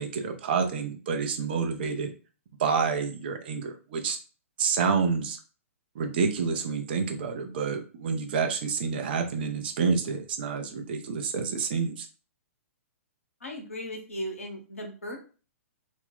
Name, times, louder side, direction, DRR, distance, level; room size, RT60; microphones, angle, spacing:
voice 1, 0.0-2.1 2.6-4.2 4.6-5.4 6.0-12.1, right 5 dB, 45° right, 6 dB, 0.5 m, -28 dB
voice 2, 13.4-15.2, equal, 70° left, 2 dB, 0.9 m, -37 dB
2.5 x 2.2 x 3.5 m, 0.36 s
figure-of-eight pair, 115°, 8 cm